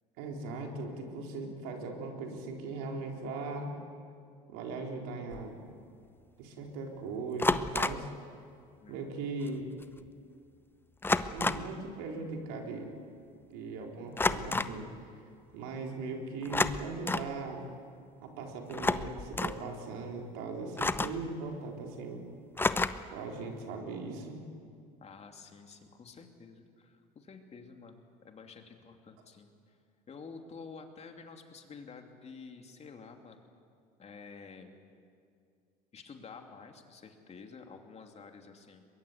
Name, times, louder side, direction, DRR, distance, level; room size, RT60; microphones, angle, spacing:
voice 1, 0.2-3.7 4.5-5.6 6.4-8.1 8.9-9.7 11.3-12.9 13.5-14.9 15.5-17.6 18.2-22.3 23.1-24.4, right 3 dB, 75° right, 1 dB, 4.1 m, -39 dB
sound 1, 5.3-5.5 7.4-8.1 9.5-9.6 9.8-10.1 11.0-11.8 14.2-14.8 16.4-17.3 18.7-19.6 20.8-21.3 22.6-23.2, left 2 dB, 10° left, 0.8 m, -30 dB
voice 2, 8.8-9.2 25.0-29.8 30.1-33.5 34.0-34.8 35.9-38.8, left 5 dB, 35° left, 4 dB, 2.8 m, -50 dB
22.5 x 22.0 x 8.2 m, 2.3 s
hypercardioid pair, 85°, 20 cm